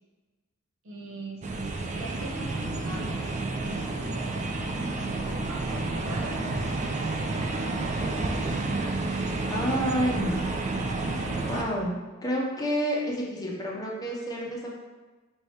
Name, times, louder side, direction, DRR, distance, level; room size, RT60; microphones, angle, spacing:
voice 1, 0.8-1.5 2.0-3.2 3.6-4.4 5.2-6.4 7.2-7.8, right 1 dB, 65° right, -1 dB, 0.7 m, -42 dB
sound 1, 1.4-11.6, right 2 dB, 35° right, 0.4 m, -30 dB
voice 2, 9.4-10.4 11.5-14.7, equal, 20° left, -3 dB, 0.6 m, -29 dB
4.5 x 2.8 x 3.2 m, 1.2 s
head